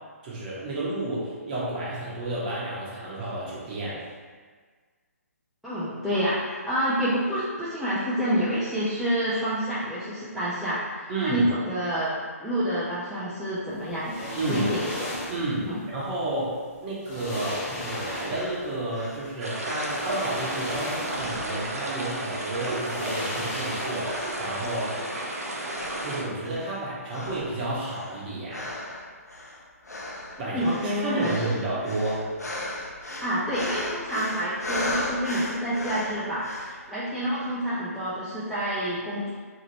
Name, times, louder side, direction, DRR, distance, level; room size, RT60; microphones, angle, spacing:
voice 1, 0.2-4.0 11.1-11.5 14.4-14.7 15.3-25.0 26.0-28.7 30.4-32.3, right 2 dB, 30° right, -7 dB, 0.9 m, -31 dB
voice 2, 5.6-12.1 12.4-14.1 14.5-14.9 15.7-15.8 30.5-31.4 33.2-39.3, equal, ahead, -12 dB, 0.3 m, -28 dB
sound 1, 14.0-15.5 16.6-16.7 17.0-18.6 19.7-21.4 21.8-21.9 22.7-24.3 24.6-24.7, left 1 dB, 25° left, 1.2 m, -35 dB
sound 2, 18.3-20.8 21.1-22.2 22.6-24.6 24.9-25.3 25.6-26.8 27.1-36.8, left 1 dB, 80° left, 0.6 m, -37 dB
sound 3, 19.4-26.2, right 1 dB, 70° right, 0.6 m, -33 dB
2.8 x 2.5 x 2.9 m, 1.5 s
figure-of-eight pair, 135°, 8 cm